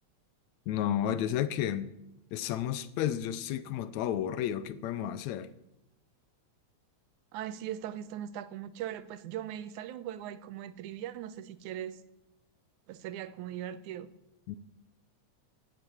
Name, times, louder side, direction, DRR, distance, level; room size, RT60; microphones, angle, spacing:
voice 1, 0.7-1.9 2.3-5.5 14.5-14.6, left 10 dB, 75° left, 1.9 m, -32 dB
voice 2, 7.3-12.0 12.9-14.1, right 11 dB, 90° right, 2.2 m, -39 dB
16.5 x 8.4 x 7.1 m
omnidirectional pair, 3.4 m